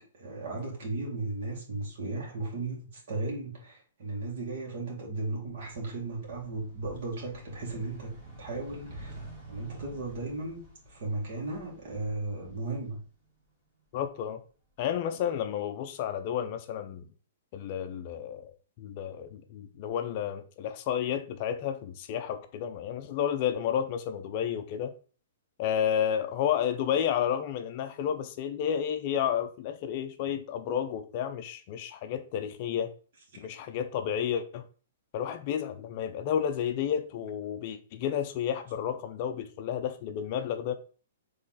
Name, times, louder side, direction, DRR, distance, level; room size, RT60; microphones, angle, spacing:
voice 1, 0.0-8.1 8.4-13.0 30.3-30.4, right 2 dB, 50° right, 1.9 m, -36 dB
sound 1, 5.4-13.4 13.8-14.9, right 1 dB, 10° right, 2.1 m, -49 dB
voice 2, 13.9-14.4 14.8-17.0 17.5-24.9 25.6-32.9 33.4-34.7 35.1-40.7, left 9 dB, 35° left, 0.5 m, -31 dB
4.2 x 3.1 x 3.9 m
hypercardioid pair, 165°, 0 cm